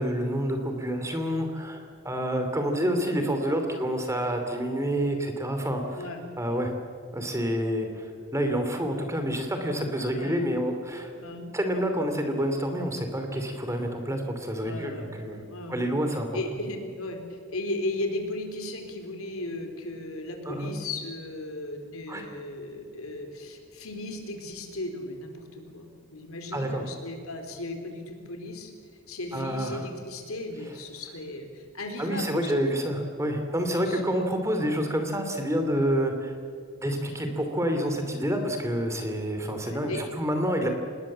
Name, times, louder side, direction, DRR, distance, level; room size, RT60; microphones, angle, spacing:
voice 1, 0.0-6.0 6.4-6.7 7.1-11.1 11.5-15.4 15.7-16.3 20.4-20.7 22.1-22.2 26.5-26.8 29.3-29.9 32.0-36.4 36.8-40.7, equal, 15° right, 5 dB, 2.7 m, -28 dB
voice 2, 6.0-6.6 10.1-10.4 11.2-11.5 14.6-15.1 15.5-15.9 16.3-28.7 29.1-32.5 33.9-34.2 39.6-40.0, left 2 dB, 75° left, 4 dB, 4.0 m, -36 dB
26.5 x 20.5 x 7.5 m, 2.2 s
head